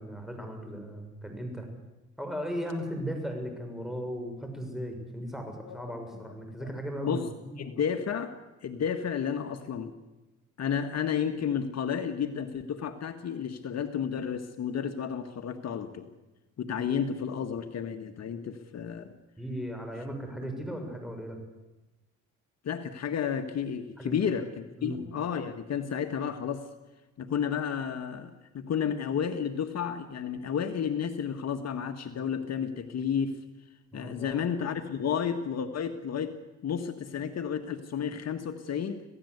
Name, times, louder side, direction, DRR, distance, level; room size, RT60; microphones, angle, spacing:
voice 1, 0.0-1.7 2.2-7.6 19.4-21.4 24.0-24.2 24.8-25.0 33.9-34.4, equal, ahead, 4 dB, 6.8 m, -37 dB
voice 2, 7.6-9.9 10.6-16.1 16.6-19.1 22.6-26.7 27.2-33.4 33.9-36.4 36.6-39.0, left 7 dB, 60° left, 7 dB, 1.7 m, -32 dB
27.0 x 17.0 x 8.2 m, 1.1 s
cardioid pair, 90°, 30 cm